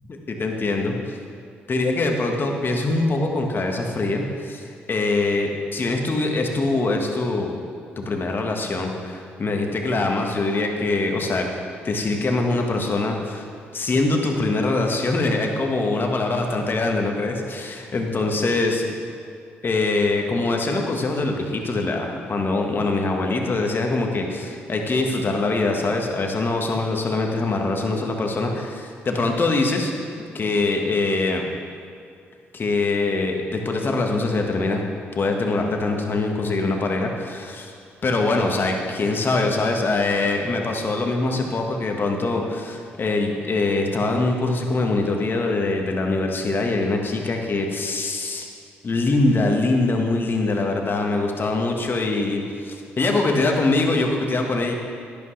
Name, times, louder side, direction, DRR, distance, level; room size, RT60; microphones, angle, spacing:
voice 1, 0.3-1.2 1.7-7.6 8.0-11.5 11.8-13.5 13.7-19.0 19.6-29.9 30.3-31.4 32.5-34.8 35.1-37.7 38.0-48.5 48.8-54.7, left 2 dB, 40° left, 2 dB, 1.5 m, -23 dB
11.0 x 10.5 x 3.3 m, 2.3 s
hypercardioid pair, 50°, 5 cm